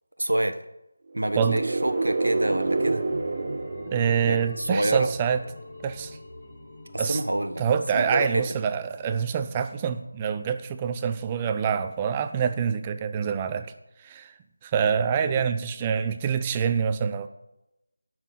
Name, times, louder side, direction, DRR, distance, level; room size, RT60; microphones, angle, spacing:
voice 1, 0.2-0.6 1.1-3.0 4.3-5.1 6.9-7.6 7.9-8.4 15.2-15.4, right 1 dB, 85° right, 8 dB, 1.0 m, -27 dB
sound 1, 1.1-4.9, right 3 dB, 40° right, 1.2 m, -28 dB
sound 2, 1.8-11.2 11.5-11.6, left 1 dB, 30° left, 2.2 m, -44 dB
voice 2, 3.9-5.4 5.8-6.2 7.0-7.2 7.6-13.7 14.0-14.3 14.6-17.3, right 7 dB, 15° right, 9 dB, 0.6 m, -26 dB
18.0 x 6.1 x 3.9 m, 0.91 s
figure-of-eight pair, 165°, 0 cm